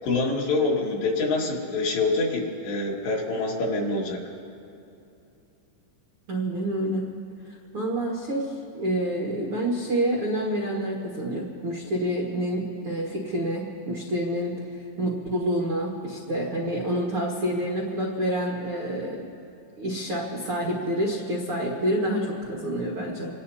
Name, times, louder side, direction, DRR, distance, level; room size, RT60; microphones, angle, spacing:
voice 1, 0.0-4.2, left 3 dB, 65° left, -3 dB, 4.0 m, -26 dB
voice 2, 6.3-7.1 7.7-14.6 15.0-19.3 19.8-23.3, right 1 dB, 90° right, -3 dB, 1.2 m, -28 dB
28.0 x 18.0 x 2.8 m, 2.7 s
omnidirectional pair, 5.5 m